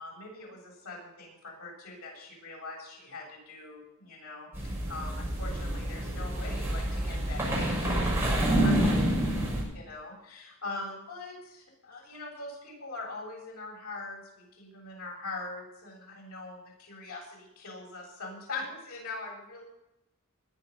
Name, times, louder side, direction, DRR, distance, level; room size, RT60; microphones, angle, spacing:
voice 1, 0.0-8.7 9.7-19.6, left 3 dB, 85° left, -2 dB, 7.9 m, -42 dB
sound 1, 4.5-9.6, right 1 dB, 10° right, 6.6 m, -28 dB
20.5 x 9.9 x 5.6 m, 0.86 s
head